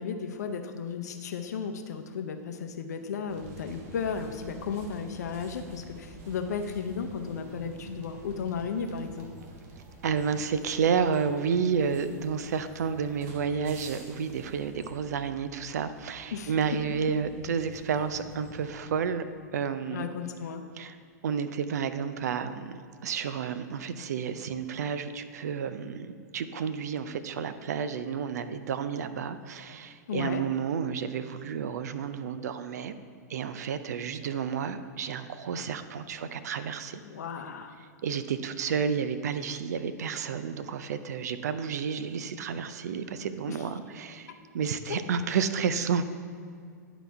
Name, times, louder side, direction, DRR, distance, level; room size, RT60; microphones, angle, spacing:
voice 1, 0.0-9.3 16.3-16.5 19.9-20.6 30.1-30.4 37.0-37.8 43.5-43.6 44.3-44.4, left 6 dB, 70° left, 6 dB, 0.7 m, -34 dB
sound 1, 3.3-18.7, right 1 dB, 50° right, 1.2 m, -48 dB
voice 2, 10.0-19.2 19.5-20.1 20.8-21.0 21.2-32.9 33.3-37.0 38.0-46.0, right 6 dB, 65° right, 11 dB, 0.5 m, -31 dB
10.5 x 4.0 x 4.5 m, 2.3 s
hypercardioid pair, 105°, 9 cm